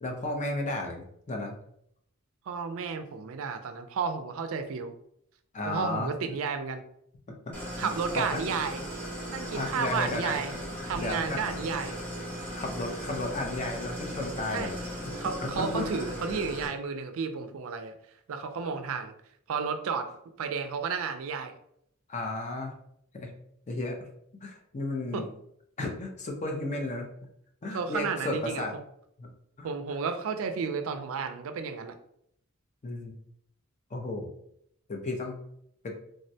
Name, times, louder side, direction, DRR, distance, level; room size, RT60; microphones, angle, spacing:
voice 1, 0.0-1.6 5.5-6.1 7.5-7.6 7.8-8.4 9.5-10.4 11.0-11.5 12.5-14.8 15.0-15.1 15.6-16.1 22.1-22.7 23.1-23.3 23.7-24.0 24.4-25.3 25.8-27.1 27.6-28.7 29.2-29.3 29.6-29.7 32.8-33.2 33.9-34.3 34.9-35.4 35.8-36.0, left 2 dB, 35° left, 2 dB, 0.5 m, -33 dB
voice 2, 2.5-4.9 5.7-6.8 7.8-8.8 9.3-10.5 10.9-11.9 14.5-14.7 15.1-17.9 18.3-19.1 19.5-20.1 20.4-21.5 25.1-25.3 27.6-28.6 29.6-32.0, right 5 dB, 65° right, 8 dB, 0.4 m, -32 dB
Idling, 7.5-16.7, equal, 10° left, 0.9 m, -37 dB
3.5 x 2.1 x 2.6 m, 0.71 s
head